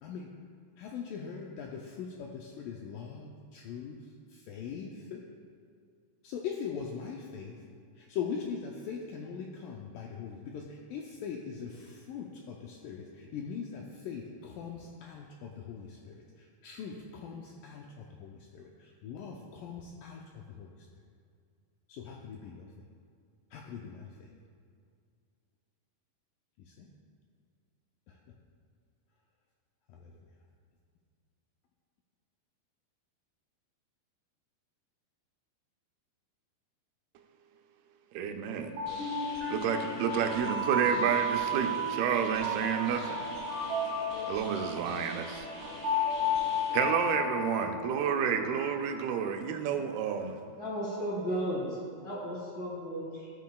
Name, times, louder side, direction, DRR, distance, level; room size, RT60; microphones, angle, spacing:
voice 1, 0.0-0.4 0.8-5.3 6.2-7.6 8.0-20.9 21.9-22.7 23.5-24.3 26.6-26.9 28.1-28.4 29.9-30.2, left 6 dB, 85° left, 0 dB, 1.9 m, -41 dB
voice 2, 38.1-38.7 39.5-43.2 44.3-45.5 46.7-50.4, right 7 dB, 85° right, 5 dB, 2.5 m, -30 dB
sound 1, 38.5-49.6, left 1 dB, 60° right, 1.6 m, -33 dB
sound 2, 38.9-46.9, equal, 35° right, 1.9 m, -47 dB
voice 3, 50.6-53.3, equal, 40° left, -6 dB, 1.9 m, -35 dB
13.0 x 8.1 x 2.3 m, 2.2 s
omnidirectional pair, 4.4 m